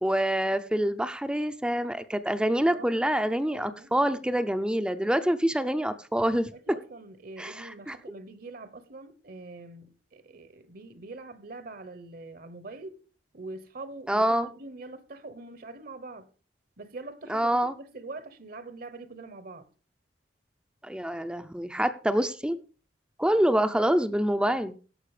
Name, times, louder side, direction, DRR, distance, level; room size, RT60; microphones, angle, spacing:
voice 1, 0.0-6.5 7.4-7.9 14.1-14.5 17.3-17.7 20.8-22.6 23.2-24.7, right 1 dB, 5° right, 0.6 m, -26 dB
voice 2, 2.7-3.0 3.5-3.9 4.2-4.4 6.5-13.0 13.3-16.3 16.8-19.7, right 2 dB, 55° right, 1.1 m, -44 dB
16.5 x 5.8 x 4.9 m
head